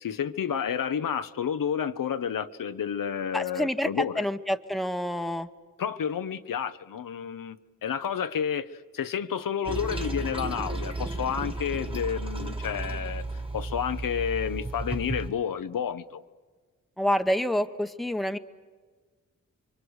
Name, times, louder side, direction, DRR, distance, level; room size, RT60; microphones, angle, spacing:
voice 1, 0.0-4.2 5.8-7.6 7.8-13.2 13.5-16.2, left 8 dB, 85° left, 1.0 m, -30 dB
voice 2, 3.3-3.9 4.2-5.5 17.0-18.4, equal, ahead, 1.0 m, -27 dB
Toilet flush, 9.6-15.3, right 2 dB, 15° right, 1.9 m, -33 dB
29.5 x 24.0 x 8.1 m
wide cardioid pair, 115°, 32 cm